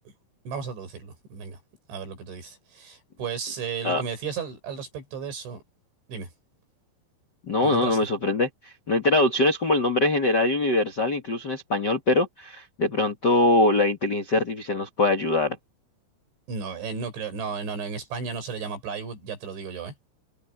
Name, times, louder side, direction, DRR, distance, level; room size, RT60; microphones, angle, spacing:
voice 1, 0.5-1.6 1.9-5.6 6.1-6.3 7.6-8.0 16.5-19.9, right 5 dB, 85° right, 9.1 m, -34 dB
voice 2, 7.5-8.5 8.9-15.6, left 2 dB, 55° left, 1.1 m, -23 dB
omnidirectional pair, 5.2 m